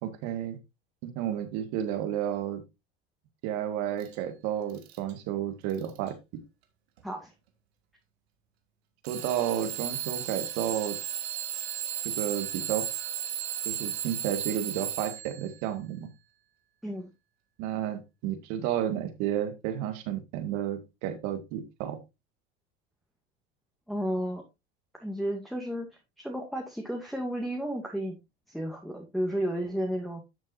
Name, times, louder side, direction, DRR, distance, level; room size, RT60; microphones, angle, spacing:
voice 1, 0.0-0.6 1.0-2.6 3.4-6.1 9.1-11.0 12.0-12.9 13.7-16.1 17.6-22.0, right 10 dB, 70° right, 8 dB, 2.1 m, -31 dB
Alarm / Clock, 4.0-4.2 4.7-5.1 5.7-6.1 7.0-7.1 9.0-15.4, right 10 dB, 85° right, 1.8 m, -35 dB
voice 2, 23.9-24.4 25.0-25.9 26.2-28.2 28.5-30.2, equal, ahead, 1 dB, 2.1 m, -32 dB
12.0 x 6.4 x 2.6 m, 0.23 s
hypercardioid pair, 80°, 31 cm